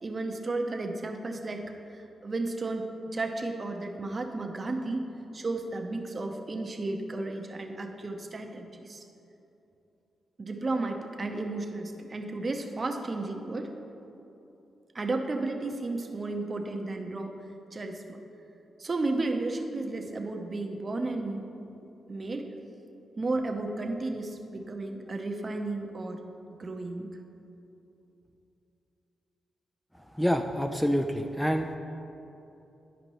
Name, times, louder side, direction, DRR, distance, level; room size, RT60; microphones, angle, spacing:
voice 1, 0.0-9.0 10.4-13.7 14.9-17.3 17.7-18.2 18.8-21.5 22.1-22.5 23.2-26.2 26.6-27.2, right 2 dB, 40° right, 4 dB, 0.7 m, -33 dB
voice 2, 30.2-31.7, equal, 5° left, 5 dB, 0.4 m, -27 dB
11.0 x 5.1 x 3.0 m, 2.9 s
cardioid pair, 65°, 0 cm